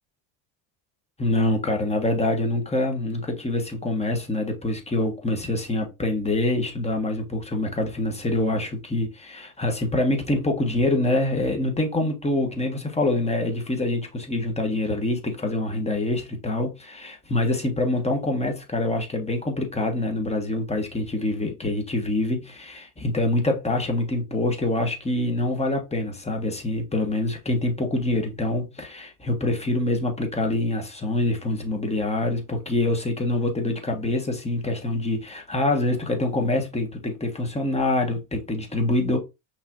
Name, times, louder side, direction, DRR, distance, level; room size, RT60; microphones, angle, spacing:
voice 1, 1.2-39.2, left 2 dB, 15° left, 1.4 m, -25 dB
5.6 x 3.6 x 2.6 m
cardioid pair, 105°, 46 cm